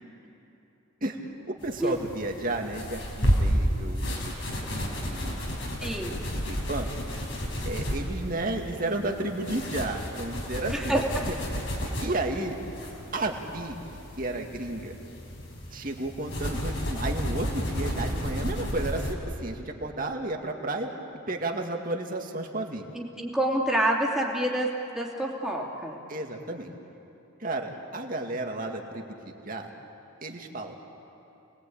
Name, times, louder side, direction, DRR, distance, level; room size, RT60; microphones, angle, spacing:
voice 1, 1.5-5.4 5.8-5.9 6.5-6.9 7.3-11.0 11.3-11.6 12.0-12.6 13.1-13.8 14.2-14.9 15.7-22.8 26.1-26.7 27.4-29.7 30.2-30.7, right 2 dB, 40° right, 2 dB, 2.2 m, -33 dB
sound 1, 1.6-19.1, equal, 65° left, 5.1 m, -32 dB
voice 2, 5.8-6.2 10.7-11.2 22.9-24.7 24.9-26.0, right 1 dB, ahead, -3 dB, 2.9 m, -27 dB
30.0 x 21.0 x 8.7 m, 2.9 s
head